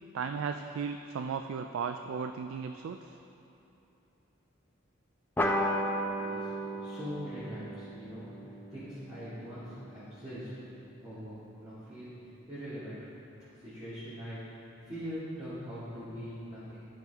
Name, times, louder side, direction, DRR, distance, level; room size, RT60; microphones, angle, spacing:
voice 1, 0.1-3.2, right 6 dB, 80° right, 7 dB, 0.3 m, -35 dB
sound 1, 5.4-10.3, equal, 10° left, 0.5 m, -35 dB
voice 2, 6.2-10.5 11.0-13.1 13.5-16.9, equal, 20° right, -14 dB, 2.1 m, -42 dB
12.0 x 6.0 x 3.5 m, 3.0 s
head